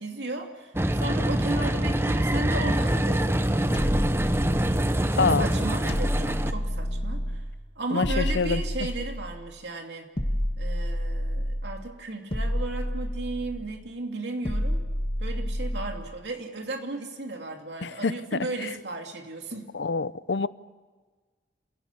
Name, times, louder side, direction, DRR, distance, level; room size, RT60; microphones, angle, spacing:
voice 1, 0.0-3.5 5.1-7.4 7.8-10.1 10.6-14.9 15.2-19.7, right 2 dB, 80° right, 2.7 m, -35 dB
sound 1, 0.7-6.5, right 1 dB, 15° right, 0.8 m, -25 dB
sound 2, 3.7-5.1 5.9-7.5 8.0-9.4 10.2-11.8 12.3-13.7 14.4-16.1, equal, 30° left, 1.6 m, -29 dB
voice 2, 7.9-8.6 17.8-18.1 18.6-18.7 19.7-20.5, left 4 dB, 85° left, 0.7 m, -26 dB
27.5 x 17.0 x 8.4 m
head